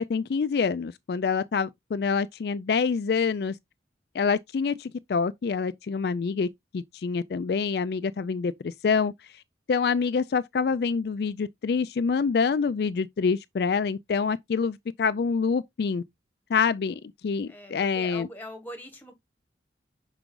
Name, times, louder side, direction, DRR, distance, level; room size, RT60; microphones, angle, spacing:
voice 1, 0.0-3.6 4.1-6.5 6.7-9.1 9.7-16.0 16.5-18.3, left 5 dB, 60° left, 0.3 m, -26 dB
voice 2, 17.5-19.1, left 1 dB, 10° left, 1.5 m, -42 dB
5.9 x 4.8 x 3.8 m
head